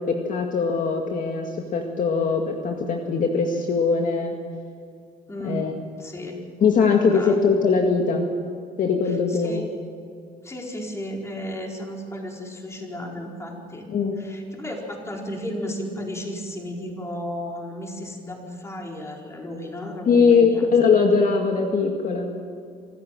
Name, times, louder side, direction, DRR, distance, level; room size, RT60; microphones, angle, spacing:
voice 1, 0.0-4.3 5.4-5.7 6.6-8.3 8.8-9.7 13.9-14.2 20.1-22.3, left 5 dB, 50° left, 2 dB, 2.1 m, -21 dB
voice 2, 5.3-5.7 6.0-6.3 7.1-7.4 9.1-9.6 10.4-13.9 14.2-20.7, equal, 15° left, 0 dB, 4.5 m, -34 dB
26.0 x 14.0 x 7.5 m, 2.3 s
cardioid pair, 110°, 17 cm